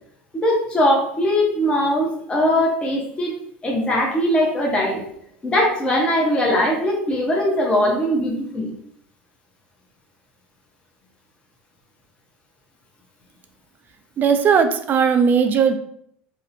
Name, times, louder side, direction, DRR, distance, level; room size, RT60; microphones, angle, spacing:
voice 1, 0.3-3.3 3.6-5.1 5.4-8.7, left 1 dB, 20° left, -2 dB, 0.7 m, -20 dB
voice 2, 14.2-15.8, right 6 dB, 35° right, 7 dB, 0.3 m, -17 dB
2.7 x 2.0 x 2.5 m, 0.66 s
supercardioid pair, 100°, 5 cm